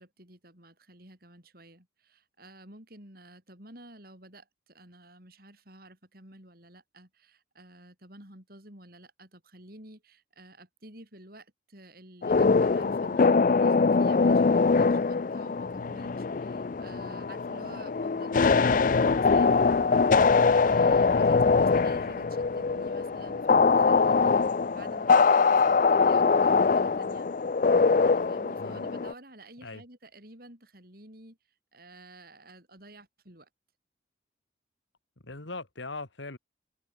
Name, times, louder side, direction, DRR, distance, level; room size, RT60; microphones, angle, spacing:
voice 1, 0.0-27.3 28.0-31.4 31.7-33.5, right 1 dB, 50° right, 7.0 m, -51 dB
sound 1, 12.2-29.1, left 4 dB, 45° left, 0.4 m, -23 dB
voice 2, 35.2-36.4, left 2 dB, 75° left, 2.6 m, -40 dB
head